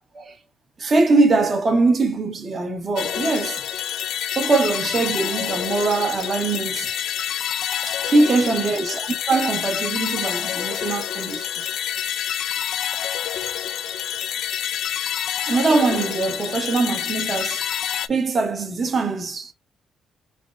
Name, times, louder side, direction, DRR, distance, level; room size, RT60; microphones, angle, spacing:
voice 1, 0.8-3.6 4.3-6.9 7.9-11.5 15.4-17.6 18.1-19.5, right 3 dB, 40° right, 1.1 m, -22 dB
sound 1, 3.0-18.1, left 10 dB, 75° left, 0.3 m, -27 dB
6.0 x 2.1 x 2.5 m
cardioid pair, 90°, 0 cm